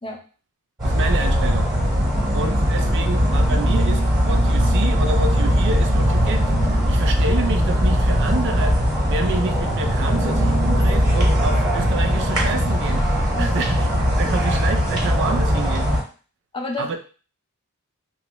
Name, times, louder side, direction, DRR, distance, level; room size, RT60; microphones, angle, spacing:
sound 1, 0.8-16.0, equal, 15° right, 1.1 m, -19 dB
voice 1, 0.8-1.7 2.3-13.9 14.2-15.9 16.8-17.0, right 3 dB, 55° right, 5 dB, 0.4 m, -28 dB
voice 2, 16.5-17.0, left 2 dB, 25° left, 1 dB, 0.5 m, -30 dB
2.9 x 2.3 x 2.9 m, 0.38 s
head